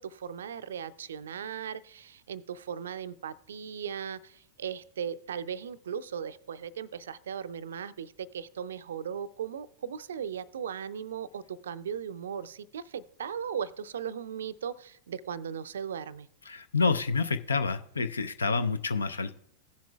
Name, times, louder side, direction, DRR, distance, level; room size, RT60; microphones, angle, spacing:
voice 1, 0.0-16.3, right 8 dB, 65° right, 15 dB, 0.4 m, -37 dB
voice 2, 16.5-19.3, left 4 dB, 75° left, 12 dB, 0.5 m, -28 dB
16.0 x 7.4 x 2.3 m, 0.71 s
figure-of-eight pair, 90°, 0 cm